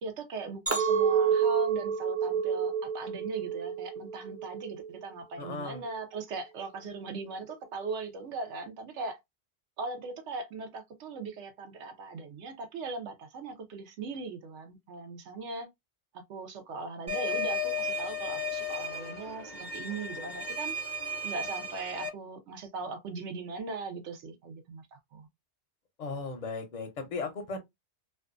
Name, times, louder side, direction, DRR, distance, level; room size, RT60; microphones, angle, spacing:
voice 1, 0.0-9.2 9.8-15.7 16.1-20.7 21.2-25.3, right 3 dB, 85° right, 0.9 m, -39 dB
Chink clink, 0.7-5.0 5.5-5.9, right 7 dB, 20° right, 0.4 m, -29 dB
voice 2, 5.4-5.8 26.0-27.6, left 4 dB, 50° left, 0.5 m, -36 dB
sound 1, 17.1-22.1, left 2 dB, 40° right, 0.9 m, -34 dB
2.5 x 2.2 x 2.4 m
omnidirectional pair, 1.2 m